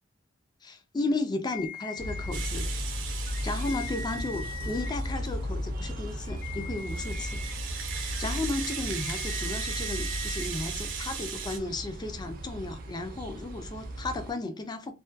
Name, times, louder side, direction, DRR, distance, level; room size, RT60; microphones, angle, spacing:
voice 1, 0.6-2.7 3.4-7.5 7.9-14.9, left 2 dB, 20° left, 0.3 m, -34 dB
sound 1, 1.5-2.5 3.3-4.9 6.2-7.5 8.9-10.5, left 3 dB, 50° left, 0.9 m, -41 dB
sound 2, 2.0-14.3, equal, 50° right, 0.5 m, -36 dB
Rattle (instrument), 2.3-5.4 5.9-11.6, right 7 dB, 80° right, 0.7 m, -38 dB
2.3 x 2.2 x 2.5 m
head